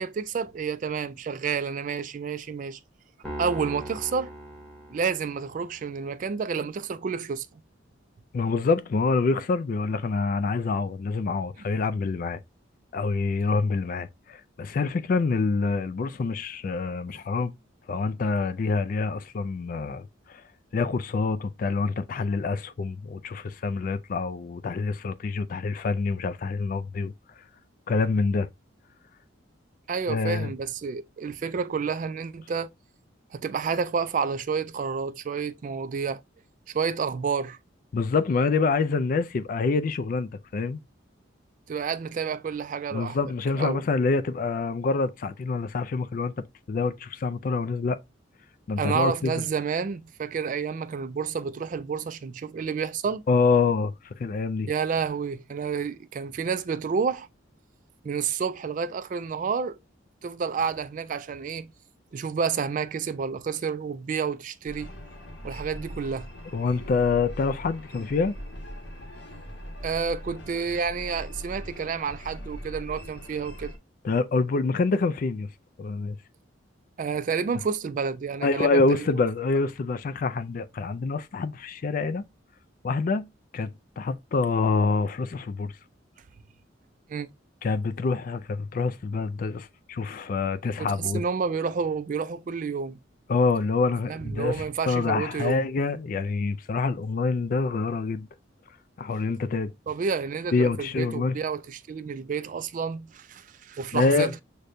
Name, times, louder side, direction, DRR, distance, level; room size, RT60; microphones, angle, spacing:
voice 1, 0.0-2.8 3.4-4.3 4.9-7.5 29.9-32.7 33.3-36.2 36.7-37.6 41.7-43.2 43.6-43.8 48.8-53.2 54.7-57.3 58.0-59.8 60.2-61.7 62.1-64.9 65.4-66.3 69.8-73.7 77.0-79.1 87.1-87.3 90.8-93.0 94.1-95.7 99.9-104.4, right 5 dB, 40° right, 0.3 m, -30 dB
Piano, 3.2-5.7, right 1 dB, 5° left, 1.1 m, -39 dB
voice 2, 8.3-12.4 12.9-17.5 17.9-20.4 20.7-27.1 27.9-28.5 30.1-30.5 37.9-40.8 42.9-46.3 46.7-48.0 48.7-49.4 53.3-53.9 54.2-54.7 66.5-68.4 74.0-75.5 75.8-76.2 78.4-82.2 82.8-83.3 83.5-85.7 87.6-91.2 93.3-98.3 99.0-99.7 100.5-101.4 103.9-104.3, left 4 dB, 45° left, 0.3 m, -26 dB
sound 1, 64.7-73.8, equal, 60° left, 1.2 m, -41 dB
6.4 x 2.2 x 2.5 m
head